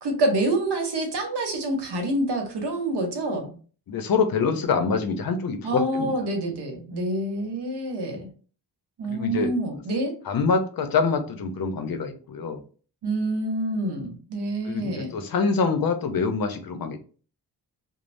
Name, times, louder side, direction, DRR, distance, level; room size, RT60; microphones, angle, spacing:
voice 1, 0.0-3.6 5.6-8.3 9.0-10.1 13.0-15.1, right 1 dB, 75° right, 4 dB, 0.9 m, -27 dB
voice 2, 3.9-6.1 9.1-9.5 10.3-12.6 14.6-17.0, left 5 dB, 60° left, 8 dB, 0.6 m, -25 dB
3.1 x 2.0 x 2.5 m, 0.39 s
wide cardioid pair, 100°, 40 cm